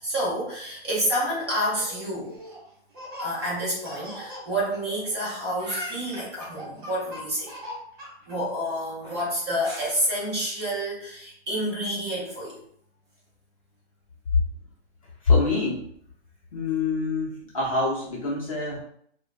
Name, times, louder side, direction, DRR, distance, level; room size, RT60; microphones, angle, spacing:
voice 1, 0.0-2.4 3.2-7.5 8.3-12.6, equal, 25° right, -6 dB, 0.9 m, -29 dB
Laughter, 1.4-5.2 5.5-8.4, equal, 50° right, 1.4 m, -39 dB
voice 2, 15.2-15.9 16.5-18.8, left 3 dB, 30° left, -5 dB, 0.6 m, -25 dB
3.5 x 2.2 x 2.5 m, 0.64 s
hypercardioid pair, 170°, 33 cm